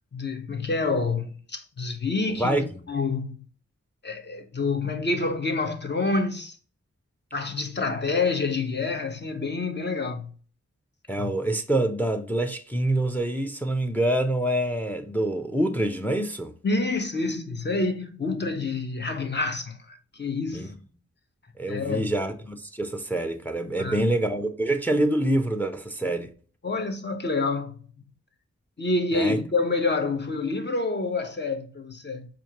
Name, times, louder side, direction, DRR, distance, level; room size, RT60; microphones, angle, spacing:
voice 1, 0.1-3.4 4.0-6.6 7.3-10.3 11.2-11.3 16.6-20.8 21.7-22.1 23.8-24.1 26.6-27.8 28.8-32.3, left 3 dB, 35° left, 0.8 m, -28 dB
voice 2, 11.1-16.5 20.5-20.7 21.6-26.3 29.1-29.4, right 1 dB, 5° left, 0.5 m, -26 dB
4.4 x 2.6 x 2.8 m
cardioid pair, 50°, 29 cm